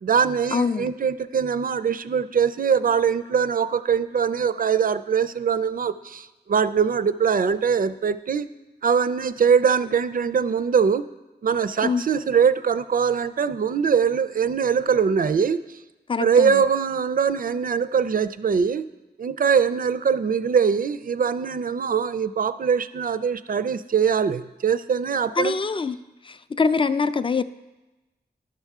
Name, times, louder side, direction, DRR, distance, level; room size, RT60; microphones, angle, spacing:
voice 1, 0.0-8.5 8.8-11.0 11.4-15.8 16.2-18.8 19.2-25.5, right 6 dB, 55° right, 14 dB, 0.4 m, -22 dB
voice 2, 0.5-0.9 11.8-12.0 16.1-16.6 25.4-26.0 26.2-27.4, left 4 dB, 30° left, 12 dB, 0.3 m, -24 dB
12.0 x 5.5 x 3.6 m, 1.1 s
wide cardioid pair, 60°, 18 cm